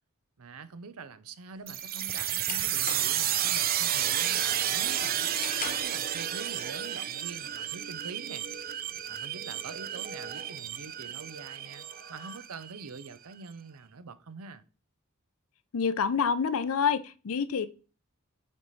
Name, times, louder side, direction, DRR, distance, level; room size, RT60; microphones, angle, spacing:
voice 1, 0.4-5.3 5.6-8.5 9.1-14.6, right 4 dB, 85° right, 0.6 m, -45 dB
sound 1, 1.6-3.4 3.8-4.1 4.5-6.1, left 5 dB, 40° left, 1.0 m, -41 dB
sound 2, 1.7-13.1, right 10 dB, 40° right, 0.4 m, -31 dB
voice 2, 15.7-17.7, left 6 dB, 75° left, 0.5 m, -27 dB
8.7 x 4.2 x 3.1 m
head